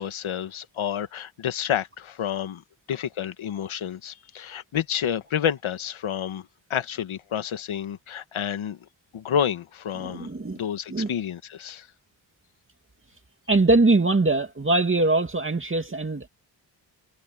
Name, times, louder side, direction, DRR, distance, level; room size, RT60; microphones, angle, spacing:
voice 1, 0.0-2.6 2.9-8.8 9.1-10.3 10.5-11.9, left 9 dB, 80° left, 1.5 m, -29 dB
voice 2, 10.0-10.6 10.9-11.1 13.5-16.3, right 2 dB, 25° right, 2.5 m, -22 dB
wide cardioid pair, 100°, 48 cm